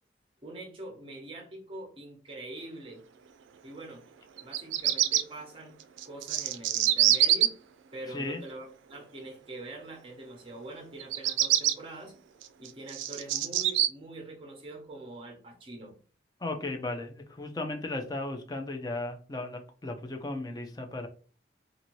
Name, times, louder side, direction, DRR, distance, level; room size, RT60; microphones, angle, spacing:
voice 1, 0.4-3.0 3.6-4.0 4.4-5.8 6.1-7.5 7.9-12.1 12.6-15.9, right 2 dB, 30° right, 2 dB, 0.8 m, -44 dB
Bird vocalization bird call bird song, 4.4-5.2 6.0-7.5 11.0-11.7 12.4-13.9, right 12 dB, 90° right, 0.3 m, -24 dB
voice 2, 8.1-8.4 16.4-21.1, left 2 dB, 20° left, 4 dB, 0.4 m, -35 dB
2.7 x 2.6 x 3.0 m, 0.39 s
head